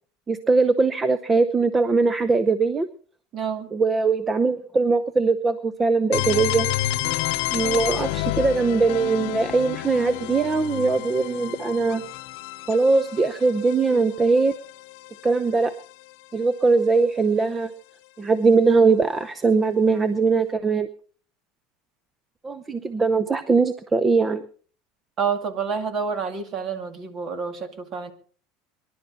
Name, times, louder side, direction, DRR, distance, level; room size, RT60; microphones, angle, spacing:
voice 1, 0.3-2.9 3.7-6.7 7.5-12.0 12.7-14.5 15.2-15.7 16.3-17.7 18.2-20.9 22.4-24.5, right 4 dB, 20° right, 13 dB, 0.7 m, -21 dB
voice 2, 3.3-3.7 25.2-28.1, right 6 dB, 40° right, 8 dB, 2.4 m, -28 dB
sound 1, 6.1-15.9, left 17 dB, 75° left, 0.7 m, -30 dB
24.0 x 11.5 x 4.2 m, 0.43 s
supercardioid pair, 130°, 0 cm